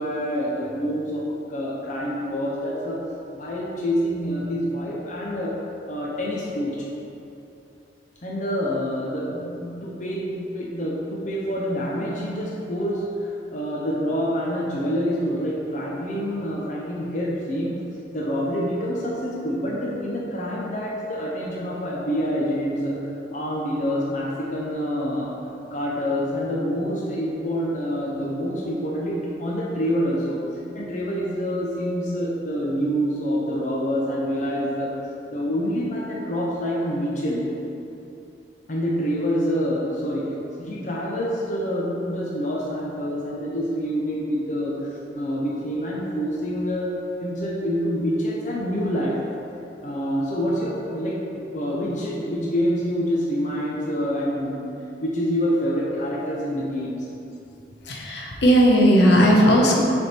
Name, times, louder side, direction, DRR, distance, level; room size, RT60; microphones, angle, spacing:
voice 1, 0.0-3.0 3.3-5.6 5.9-6.8 8.2-17.8 18.1-23.0 23.3-25.3 25.7-30.4 30.7-35.0 35.3-37.5 38.7-49.2 49.8-54.7 55.0-57.1, equal, 45° left, -5 dB, 0.6 m, -26 dB
voice 2, 57.9-59.8, equal, 70° left, -1 dB, 0.9 m, -16 dB
6.8 x 3.5 x 4.4 m, 2.8 s
head